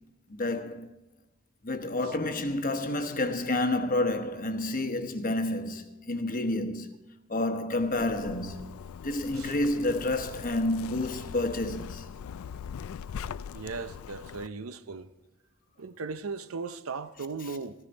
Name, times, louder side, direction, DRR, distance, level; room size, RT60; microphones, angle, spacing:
voice 1, 0.3-0.9 1.6-6.9 7.3-12.0 17.4-17.6, left 2 dB, 40° left, 1.0 m, -29 dB
Zipper (clothing), 7.8-14.5, left 7 dB, 80° left, 0.3 m, -41 dB
voice 2, 13.5-15.1 15.8-17.7, right 4 dB, 80° right, 0.7 m, -37 dB
15.0 x 13.0 x 4.1 m
head